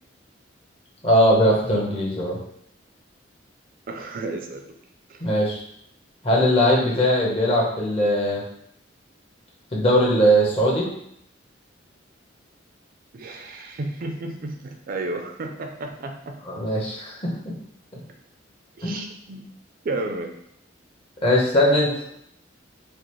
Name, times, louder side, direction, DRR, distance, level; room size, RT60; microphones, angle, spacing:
voice 1, 1.0-2.4 5.2-5.6 6.2-8.4 9.7-10.9 16.5-17.3 18.8-19.0 21.2-21.9, equal, 30° left, -4 dB, 1.0 m, -20 dB
voice 2, 3.9-4.7 5.1-5.2 13.1-16.4 18.8-19.5 19.8-20.3, right 2 dB, 50° right, 4 dB, 0.4 m, -32 dB
4.8 x 2.1 x 3.1 m, 0.71 s
head